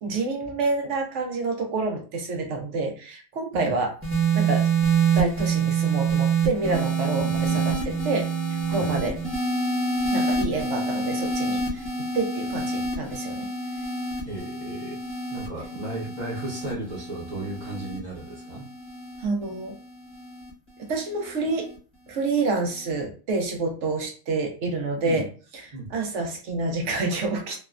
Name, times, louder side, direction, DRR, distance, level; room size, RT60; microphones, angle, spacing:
voice 1, 0.0-3.9 4.3-4.7 5.2-9.2 10.1-13.5 19.2-19.8 20.8-21.7 22.1-25.3 25.6-27.6, right 3 dB, 70° right, 3 dB, 1.0 m, -28 dB
sound 1, 4.0-20.5 21.4-21.8, right 5 dB, 10° right, 1.0 m, -27 dB
voice 2, 7.2-7.8 8.7-8.9 14.2-15.0 15.3-18.6 25.0-25.2 25.7-25.9, right 2 dB, 40° right, -5 dB, 1.1 m, -35 dB
3.1 x 2.1 x 2.4 m, 0.37 s
omnidirectional pair, 1.3 m